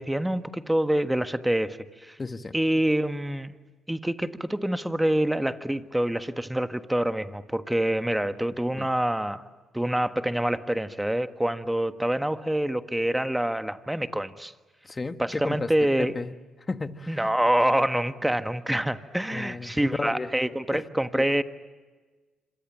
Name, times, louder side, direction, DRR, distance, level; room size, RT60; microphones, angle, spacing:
voice 1, 0.0-2.2 2.5-3.5 3.9-9.4 9.7-14.5 15.2-16.1 17.1-21.4, right 1 dB, 5° right, 10 dB, 1.5 m, -26 dB
voice 2, 2.2-2.5 8.7-8.9 14.8-15.7 16.0-16.3 16.7-17.3 19.3-20.3 20.7-20.9 21.1-21.3, left 3 dB, 30° left, 10 dB, 1.5 m, -33 dB
26.5 x 26.0 x 7.4 m, 1.3 s
supercardioid pair, 55°, 0 cm